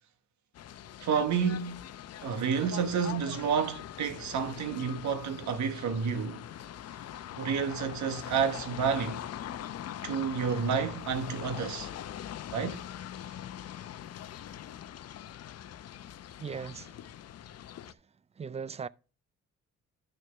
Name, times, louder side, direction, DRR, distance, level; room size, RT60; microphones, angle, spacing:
sound 1, 0.5-17.9, left 11 dB, 55° left, 0.7 m, -42 dB
voice 1, 1.0-1.9 2.2-6.4 7.4-9.2 10.0-11.9 12.5-12.8, right 6 dB, 70° right, 1.3 m, -30 dB
voice 2, 16.4-16.9 18.4-18.9, right 6 dB, 20° right, 0.3 m, -38 dB
10.5 x 6.4 x 3.4 m
cardioid pair, 90°, 30 cm